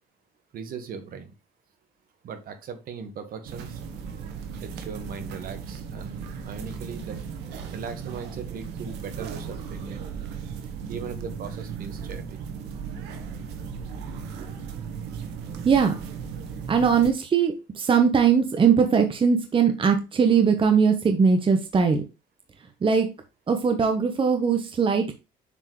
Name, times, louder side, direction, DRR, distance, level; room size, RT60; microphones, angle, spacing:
voice 1, 0.5-1.3 2.2-3.8 4.6-7.2 7.7-10.1 10.9-12.4, right 6 dB, 60° right, 7 dB, 1.6 m, -38 dB
sound 1, 3.4-17.1, right 6 dB, 90° right, 1.4 m, -36 dB
voice 2, 16.7-22.0 22.8-23.1 23.5-25.1, right 6 dB, 30° right, 6 dB, 1.1 m, -20 dB
7.4 x 4.6 x 3.2 m, 0.27 s
cardioid pair, 110°, 17 cm